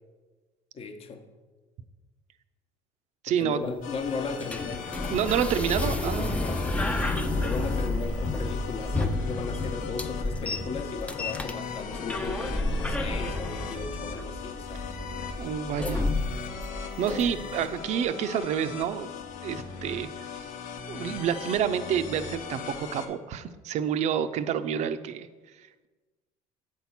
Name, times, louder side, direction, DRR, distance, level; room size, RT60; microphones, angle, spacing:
voice 1, 0.7-1.2 3.4-4.9 6.3-6.6 6.9-14.9, left 4 dB, 40° left, 6 dB, 1.0 m, -36 dB
voice 2, 3.2-3.6 5.1-6.4 15.4-16.1 17.0-19.1 19.4-20.5 20.9-25.3, right 8 dB, 50° right, 12 dB, 0.5 m, -28 dB
sound 1, 3.6-17.6, left 2 dB, 10° left, 0.5 m, -31 dB
sound 2, 3.8-23.1, left 6 dB, 80° left, 1.0 m, -39 dB
7.9 x 4.4 x 5.7 m, 1.3 s
supercardioid pair, 100°, 15 cm